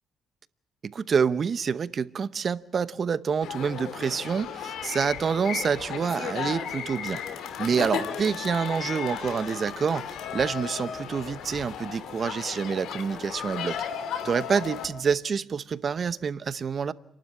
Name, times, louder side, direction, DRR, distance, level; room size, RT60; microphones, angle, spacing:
voice 1, 0.8-7.2 7.6-13.8 14.2-16.9, right 6 dB, 45° right, 0.9 m, -27 dB
sound 1, 3.4-14.9, left 8 dB, 80° left, 2.7 m, -35 dB
29.5 x 12.0 x 9.7 m
cardioid pair, 90°, 0 cm